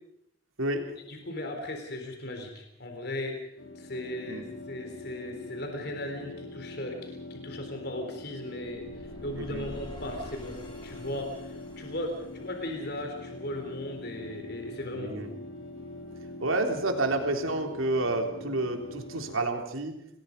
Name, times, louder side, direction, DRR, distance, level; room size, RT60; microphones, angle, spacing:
voice 1, 0.6-1.0 4.3-4.4 9.4-9.7 14.9-15.3 16.4-20.0, right 2 dB, 85° right, 4 dB, 3.5 m, -30 dB
voice 2, 1.1-3.4 3.8-15.2, left 1 dB, 50° left, 4 dB, 3.9 m, -37 dB
sound 1, 3.6-19.4, left 2 dB, 75° left, 3.4 m, -43 dB
sound 2, 8.7-13.7, left 1 dB, 25° left, 4.4 m, -48 dB
27.5 x 20.0 x 5.3 m, 0.77 s
head